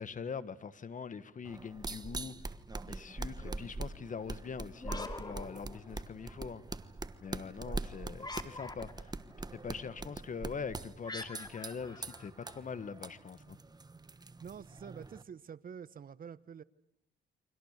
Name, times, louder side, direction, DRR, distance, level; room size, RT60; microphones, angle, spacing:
voice 1, 0.0-2.4 2.9-6.8 7.2-9.1 9.5-13.6, left 6 dB, 40° left, 1.5 m, -43 dB
sound 1, 1.4-15.2, right 3 dB, 20° right, 1.2 m, -43 dB
sound 2, 4.7-6.3 8.1-9.2 11.0-12.9, left 2 dB, 20° left, 2.4 m, -45 dB
voice 2, 14.4-16.6, right 7 dB, 45° right, 1.1 m, -47 dB
29.5 x 24.5 x 6.7 m
cardioid pair, 90°, 20 cm